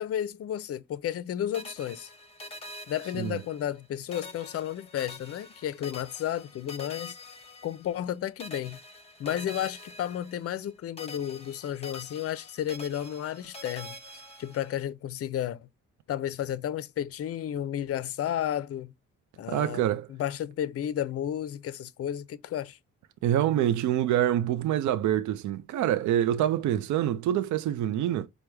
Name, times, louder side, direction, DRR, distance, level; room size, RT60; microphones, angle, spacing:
voice 1, 0.0-2.1 2.9-7.2 7.6-8.8 9.2-14.0 14.4-15.6 16.1-18.9 19.4-22.8, left 11 dB, 50° left, 0.5 m, -32 dB
sound 1, 1.5-3.8 4.1-8.1 8.4-10.7 11.0-14.8, left 2 dB, 20° left, 0.9 m, -45 dB
voice 2, 19.5-20.1 23.2-28.3, right 11 dB, 70° right, 0.5 m, -26 dB
4.6 x 2.2 x 3.3 m
cardioid pair, 90°, 30 cm